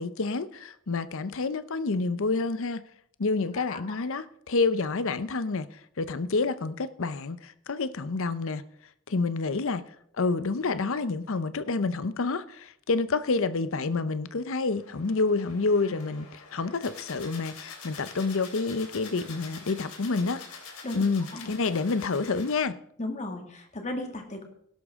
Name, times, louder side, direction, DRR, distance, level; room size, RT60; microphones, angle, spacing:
voice 1, 0.0-2.9 3.2-5.7 6.0-8.6 9.1-9.9 10.2-20.4 20.9-22.8, left 3 dB, 65° left, 0.7 m, -28 dB
sound 1, 14.7-22.6, left 5 dB, 90° left, 3.5 m, -46 dB
voice 2, 23.0-24.4, left 1 dB, 35° left, 2.1 m, -35 dB
17.5 x 11.5 x 3.7 m
head